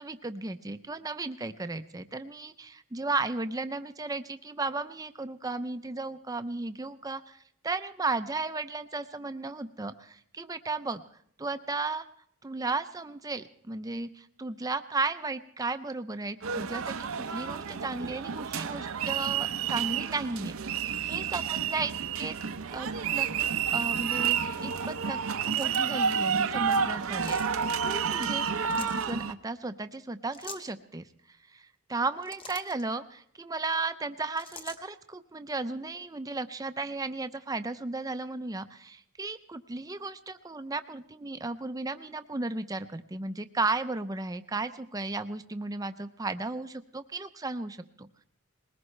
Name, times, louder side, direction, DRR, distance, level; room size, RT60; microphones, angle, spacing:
voice 1, 0.0-11.0 11.4-12.1 12.4-22.4 22.7-27.4 27.8-48.2, right 3 dB, 15° right, 10 dB, 0.5 m, -35 dB
sound 1, 16.4-29.3, right 7 dB, 70° right, 0.6 m, -30 dB
sound 2, 25.2-26.0 27.1-27.5 28.5-29.1 30.3-30.7 32.0-32.8 34.4-34.8, left 3 dB, 25° left, 0.9 m, -45 dB
21.0 x 19.0 x 3.2 m, 0.65 s
head